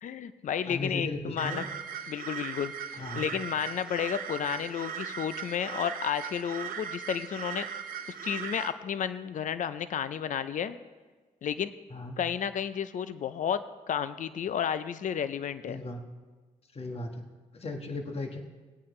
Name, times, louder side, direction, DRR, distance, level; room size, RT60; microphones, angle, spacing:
voice 1, 0.0-1.7 2.1-7.7 8.2-10.8 11.4-11.7 12.2-13.6 13.9-15.8, left 8 dB, 60° left, 13 dB, 0.6 m, -32 dB
voice 2, 0.7-1.7 2.9-3.3 11.9-12.2 15.7-16.0 16.7-17.2 17.5-18.4, left 2 dB, 40° left, 4 dB, 1.6 m, -36 dB
sound 1, 1.4-8.7, right 8 dB, 75° right, 0.8 m, -38 dB
19.5 x 8.7 x 3.2 m, 1.3 s
supercardioid pair, 60°, 15 cm